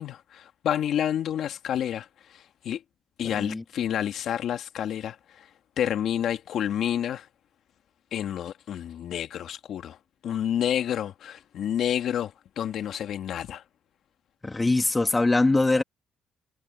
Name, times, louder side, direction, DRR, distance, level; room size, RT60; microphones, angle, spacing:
voice 1, 0.0-2.8 3.2-5.4 5.8-7.3 8.1-10.0 10.2-13.6, left 10 dB, 70° left, 2.1 m, -29 dB
voice 2, 3.2-3.6 14.4-15.8, left 2 dB, 20° left, 2.3 m, -23 dB
cardioid pair, 90°, 0 cm